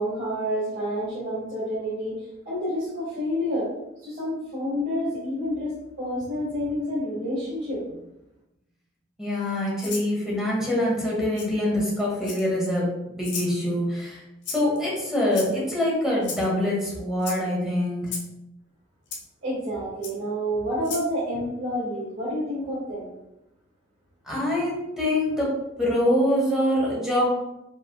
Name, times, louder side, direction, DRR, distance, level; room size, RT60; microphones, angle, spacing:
voice 1, 0.0-2.2 2.4-3.7 4.0-7.8 19.4-23.1, equal, 80° right, -9 dB, 1.5 m, -29 dB
voice 2, 9.2-14.2 14.5-18.1 24.2-25.5 25.8-27.2, left 1 dB, 5° right, -5 dB, 1.3 m, -25 dB
Rattle (instrument), 9.8-10.1 11.4-11.5 12.2-12.7 13.2-13.5 14.4-14.8 15.3-15.7 16.2-16.5 17.2-17.4 18.1-18.3 19.1-19.2 20.0-20.1 20.8-21.1, left 4 dB, 65° left, 0.9 m, -34 dB
5.1 x 3.3 x 2.3 m, 0.90 s
head